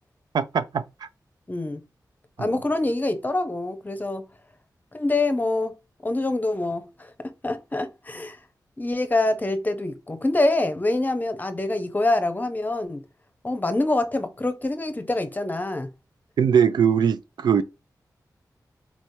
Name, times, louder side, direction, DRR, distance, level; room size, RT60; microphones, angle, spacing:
voice 1, 0.3-1.1 2.4-2.5 16.4-17.6, right 7 dB, 90° right, 0.4 m, -21 dB
voice 2, 1.5-1.8 2.4-4.2 4.9-5.7 6.0-8.4 8.8-13.0 13.4-15.9, left 2 dB, 25° left, 0.8 m, -25 dB
4.3 x 3.1 x 2.7 m
wide cardioid pair, 75°, 7 cm